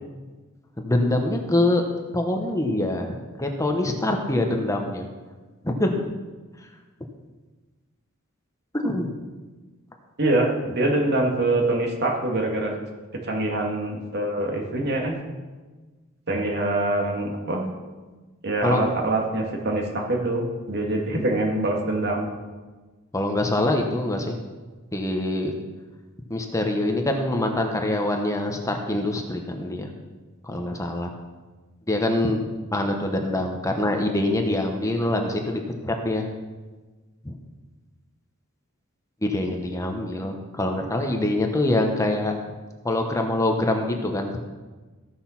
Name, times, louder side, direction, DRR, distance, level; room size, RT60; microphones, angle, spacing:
voice 1, 0.8-1.8 2.1-5.1 5.6-5.9 8.7-9.1 18.6-18.8 23.1-24.4 24.9-25.5 26.3-29.9 30.4-31.1 31.9-32.4 32.7-36.3 37.2-37.3 39.2-42.3 42.8-44.4, left 1 dB, 15° left, 3 dB, 1.0 m, -24 dB
voice 2, 10.2-12.7 13.2-15.2 16.3-17.6 18.4-22.3, right 2 dB, 55° right, 0 dB, 2.2 m, -24 dB
15.0 x 6.4 x 5.9 m, 1.3 s
head